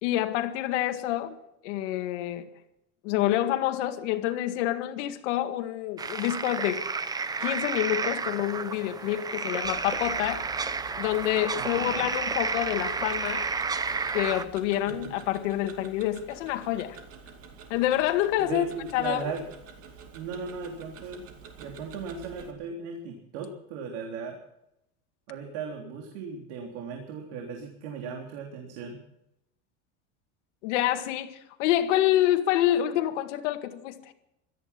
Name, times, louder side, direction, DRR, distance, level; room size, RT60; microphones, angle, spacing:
voice 1, 0.0-1.4 1.6-2.5 3.0-6.8 7.4-10.5 11.0-13.5 14.1-17.0 17.7-18.6 18.9-19.3 30.6-34.0, left 13 dB, 90° left, 2.0 m, -27 dB
sound 1, 6.0-14.4, right 4 dB, 10° right, 0.6 m, -31 dB
Tick-tock, 9.6-22.5, right 5 dB, 40° right, 2.6 m, -48 dB
voice 2, 11.6-12.1 14.9-15.1 18.4-19.4 20.1-21.2 21.6-24.4 25.3-29.0, right 5 dB, 75° right, 3.6 m, -37 dB
17.0 x 13.5 x 6.0 m
cardioid pair, 150°, 35 cm